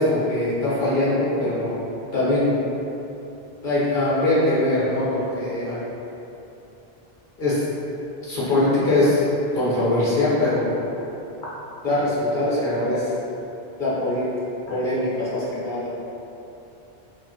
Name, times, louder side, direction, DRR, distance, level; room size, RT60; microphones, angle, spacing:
voice 1, 0.0-1.7 2.1-2.6 3.6-5.8 7.4-7.6 8.2-9.3 9.5-10.8 11.8-13.1 13.8-14.3 14.7-15.9, left 1 dB, 55° left, -9 dB, 1.2 m, -22 dB
5.2 x 2.2 x 2.8 m, 2.9 s
omnidirectional pair, 1.1 m